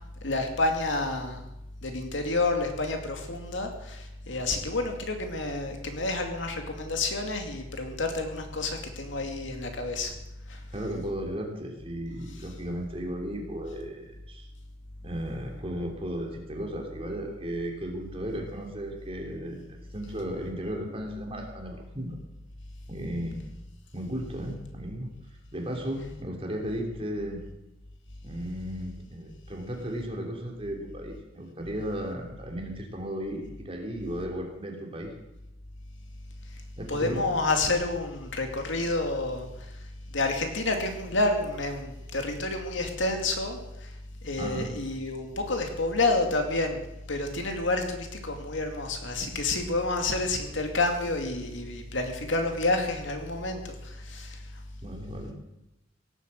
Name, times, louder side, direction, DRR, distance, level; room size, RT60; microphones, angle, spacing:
voice 1, 0.2-1.5 1.8-10.1 10.5-10.6 36.9-39.5 40.1-43.9 44.2-46.8 47.1-54.4, left 2 dB, 65° left, 4 dB, 2.5 m, -29 dB
voice 2, 10.7-14.5 15.0-22.2 22.9-23.4 23.9-25.1 25.5-27.4 28.2-35.1 36.8-37.3 44.4-44.7 54.8-55.3, equal, 30° right, 1 dB, 3.2 m, -35 dB
17.5 x 9.3 x 7.8 m, 0.90 s
head